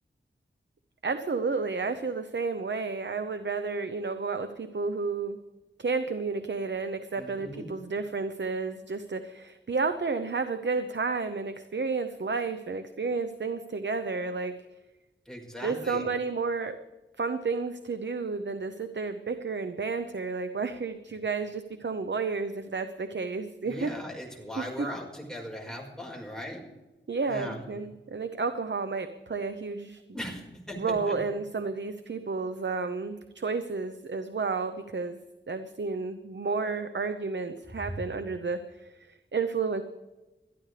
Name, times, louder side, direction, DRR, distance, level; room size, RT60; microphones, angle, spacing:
voice 1, 1.0-5.4 5.8-14.5 15.6-16.8 17.2-23.9 24.6-24.9 27.1-30.0 30.8-35.2 35.5-39.8, right 4 dB, 65° right, 9 dB, 0.8 m, -31 dB
voice 2, 7.2-7.7 15.3-16.1 23.6-26.6 27.3-27.6 30.1-31.2, equal, 5° left, -1 dB, 4.6 m, -39 dB
21.5 x 13.0 x 3.3 m, 1.1 s
wide cardioid pair, 70°, 20 cm